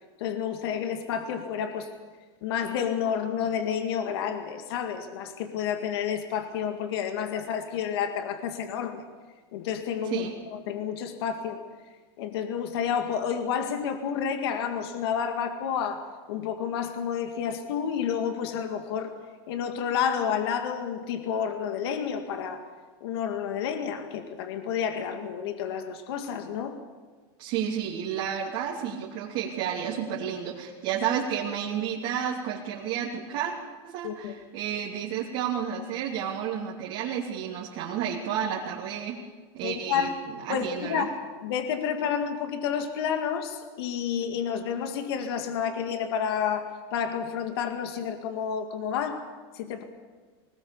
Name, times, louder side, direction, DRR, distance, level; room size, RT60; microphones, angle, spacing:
voice 1, 0.2-1.9 2.4-9.0 9.5-11.6 12.2-19.1 19.5-22.6 23.0-26.8 34.0-34.4 39.6-40.1 40.5-41.1 41.4-49.3 49.5-49.8, left 8 dB, 80° left, 6 dB, 2.1 m, -30 dB
voice 2, 27.4-33.5 33.8-39.2 39.5-40.1 40.4-41.1, right 8 dB, 60° right, -4 dB, 2.9 m, -31 dB
21.0 x 19.5 x 7.1 m, 1.4 s
supercardioid pair, 135°, 13 cm